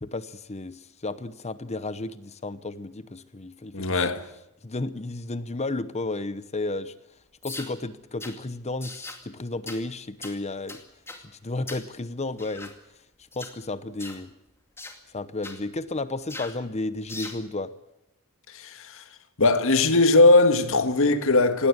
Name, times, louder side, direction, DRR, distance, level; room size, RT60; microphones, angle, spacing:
voice 1, 0.0-4.1 4.6-6.9 7.4-10.8 11.4-12.7 13.4-14.3 15.1-17.7, left 2 dB, 30° left, 0.9 m, -33 dB
voice 2, 3.7-4.3 18.5-19.0 19.4-21.7, left 2 dB, 65° left, 1.7 m, -19 dB
sound 1, 7.4-7.7 8.2-8.4 8.8-9.2 9.7-9.8 10.2-10.4 10.7-11.2 11.7-11.9 12.4-12.8 13.3-13.6 14.0-14.2 14.8-15.0 15.4-15.6 16.3-16.6 17.1-17.4, left 3 dB, 10° left, 2.3 m, -39 dB
19.0 x 17.0 x 9.6 m
head